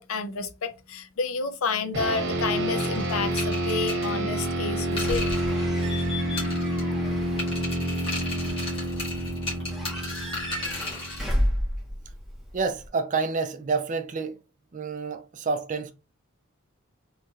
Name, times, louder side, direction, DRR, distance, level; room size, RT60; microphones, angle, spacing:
voice 1, 0.0-5.3, left 4 dB, 75° left, 0.5 m, -30 dB
sound 1, 1.9-11.6, right 1 dB, 55° right, 1.0 m, -28 dB
sound 2, 2.8-6.1 6.4-7.0 7.4-11.3, left 2 dB, 25° left, 1.2 m, -36 dB
Slam / Squeak / Alarm, 4.9-12.9, equal, ahead, 1.0 m, -33 dB
voice 2, 12.5-14.4 14.7-15.9, right 4 dB, 35° right, 0.4 m, -28 dB
3.0 x 2.7 x 2.3 m
head